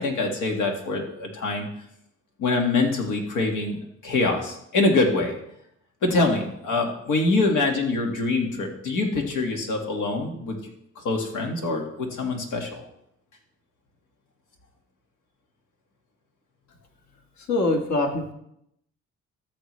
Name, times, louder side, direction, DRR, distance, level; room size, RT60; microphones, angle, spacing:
voice 1, 0.0-1.7 2.4-5.3 6.0-10.6 11.0-12.8, left 3 dB, 90° left, 2 dB, 1.9 m, -24 dB
voice 2, 17.5-18.3, left 2 dB, 65° left, 3 dB, 1.6 m, -23 dB
13.5 x 6.9 x 3.2 m, 0.76 s
cardioid pair, 90°, 30 cm